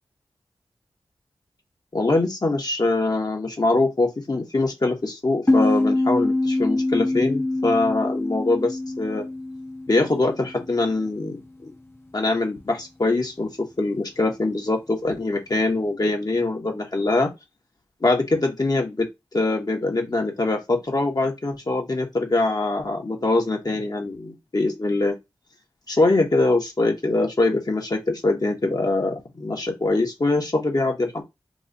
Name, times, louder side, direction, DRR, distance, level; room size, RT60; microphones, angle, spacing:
voice 1, 1.9-9.2 9.9-11.7 12.1-13.5 13.8-17.3 18.0-25.2 25.9-31.2, left 2 dB, 45° left, 1.2 m, -23 dB
sound 1, 5.5-10.8, left 2 dB, 25° left, 0.8 m, -24 dB
3.1 x 2.5 x 3.9 m
cardioid pair, 50°, 9 cm